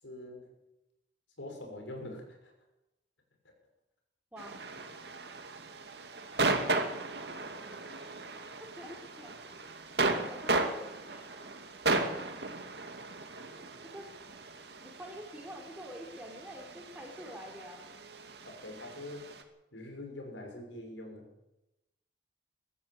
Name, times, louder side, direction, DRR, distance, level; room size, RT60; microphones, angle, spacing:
voice 1, 0.0-0.5 1.4-2.5 12.0-12.1 18.4-19.4 19.7-21.3, left 1 dB, 90° left, 3 dB, 6.4 m, -44 dB
voice 2, 4.3-4.7 6.5-6.9 8.6-9.4 10.0-10.7 11.1-11.3 13.6-14.1 14.8-17.9, equal, 10° right, 1 dB, 4.5 m, -47 dB
sound 1, 4.4-19.4, right 3 dB, 60° right, 2.5 m, -36 dB
22.0 x 13.5 x 9.0 m, 0.94 s
head